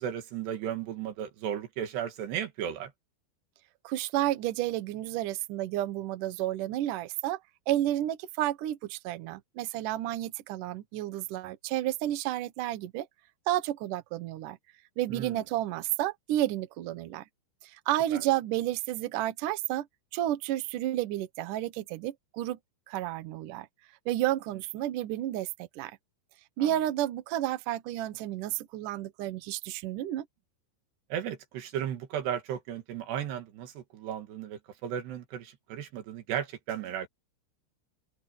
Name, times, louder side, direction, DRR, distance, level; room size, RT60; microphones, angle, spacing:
voice 1, 0.0-2.9 15.1-15.4 18.1-18.2 26.6-26.7 31.1-37.1, right 9 dB, 65° right, 3.8 m, -35 dB
voice 2, 3.8-7.4 7.7-13.1 13.5-14.6 15.0-17.3 17.6-19.9 20.1-22.6 22.9-23.7 24.1-26.0 26.6-30.3, right 14 dB, 90° right, 1.8 m, -31 dB
open air
omnidirectional pair, 5.5 m